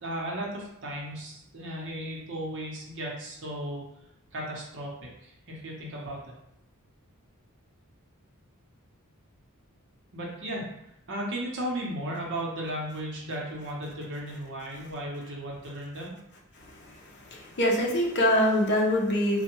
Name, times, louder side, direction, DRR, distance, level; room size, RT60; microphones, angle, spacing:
voice 1, 0.0-3.8 4.3-6.2 10.1-10.6 11.1-16.1, right 1 dB, 55° right, -2 dB, 0.8 m, -35 dB
voice 2, 16.6-19.4, left 1 dB, 50° left, -1 dB, 0.6 m, -25 dB
3.3 x 2.2 x 3.0 m, 0.81 s
head